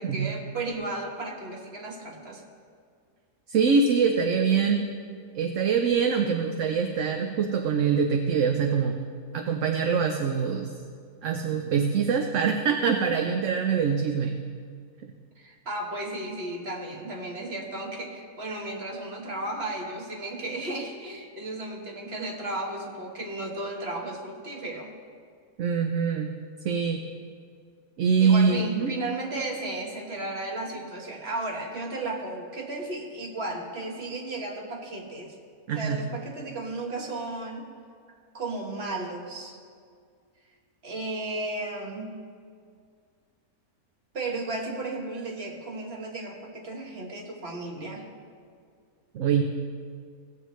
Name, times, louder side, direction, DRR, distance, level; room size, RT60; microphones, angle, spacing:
voice 1, 0.0-2.4 15.4-24.9 28.2-35.3 35.7-37.6 38.3-39.6 40.8-42.2 44.1-48.1, right 2 dB, 45° right, 0 dB, 1.5 m, -34 dB
voice 2, 3.5-4.8 5.3-9.0 9.3-10.7 11.2-14.3 25.6-26.3 26.6-27.0 28.0-28.9 35.7-36.0 49.1-49.4, right 6 dB, 65° right, 4 dB, 0.9 m, -24 dB
17.0 x 7.8 x 3.1 m, 2.1 s
omnidirectional pair, 1.6 m